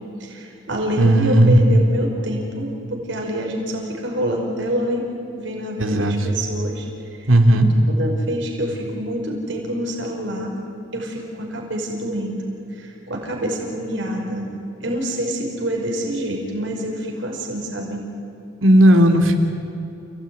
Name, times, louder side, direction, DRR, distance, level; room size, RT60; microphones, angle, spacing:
voice 1, 0.2-5.1 5.3-6.8 8.0-10.6 10.9-12.4 12.7-14.5 14.8-18.0, equal, 65° right, 0 dB, 5.3 m, -26 dB
voice 2, 1.0-1.6 5.8-6.3 7.3-7.7 18.6-19.4, right 1 dB, 85° right, 5 dB, 2.8 m, -14 dB
29.5 x 17.5 x 9.7 m, 2.9 s
head